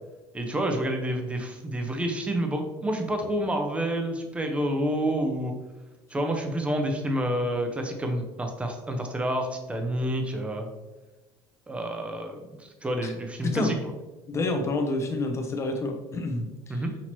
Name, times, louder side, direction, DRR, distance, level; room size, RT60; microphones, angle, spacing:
voice 1, 0.3-5.5 6.1-10.7 11.7-13.8 16.7-16.9, right 1 dB, 10° right, 4 dB, 0.6 m, -29 dB
voice 2, 13.4-13.7 14.3-16.8, left 2 dB, 25° left, 4 dB, 0.7 m, -28 dB
6.0 x 2.8 x 3.0 m, 1.1 s
cardioid pair, 125°, 11 cm